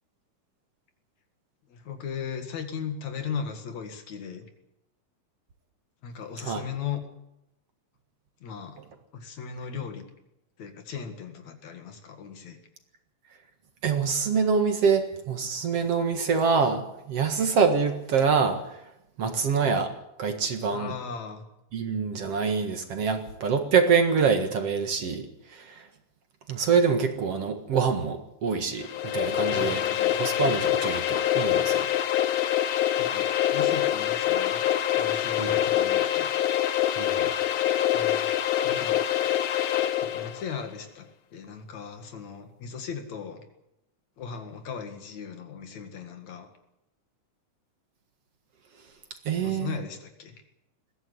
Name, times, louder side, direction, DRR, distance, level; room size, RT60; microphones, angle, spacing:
voice 1, 1.7-4.5 6.0-7.0 8.4-8.8 9.1-10.1 10.6-12.6 19.2-19.4 20.7-21.4 29.5-30.2 33.0-34.6 35.0-36.3 37.9-38.3 38.6-39.0 40.0-43.4 44.2-46.5 49.4-50.4, left 6 dB, 65° left, 6 dB, 3.1 m, -37 dB
voice 2, 13.8-18.8 19.2-19.9 20.2-21.0 21.7-25.9 26.5-29.8 30.2-31.9 35.4-35.6 37.0-37.3 49.3-49.8, right 5 dB, 55° right, 6 dB, 2.5 m, -25 dB
sound 1, 28.8-40.4, left 11 dB, 85° left, 1.1 m, -25 dB
21.5 x 15.5 x 8.0 m, 0.86 s
omnidirectional pair, 3.6 m